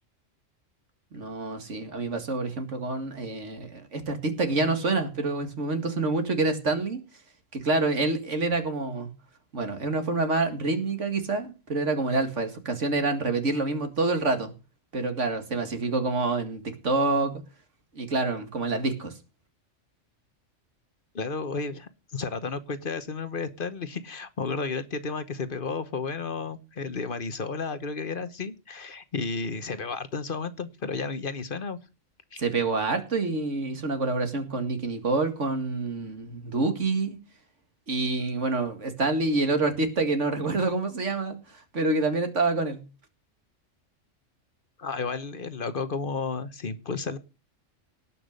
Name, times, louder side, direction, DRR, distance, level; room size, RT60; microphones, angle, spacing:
voice 1, 1.1-7.0 7.5-9.1 9.5-14.5 14.9-17.4 18.0-19.1 32.4-37.2 37.9-42.8, right 3 dB, 65° right, 2.4 m, -27 dB
voice 2, 21.1-31.8 32.3-32.4 44.8-47.2, left 4 dB, 45° left, 1.2 m, -32 dB
18.0 x 6.0 x 6.6 m
omnidirectional pair, 1.3 m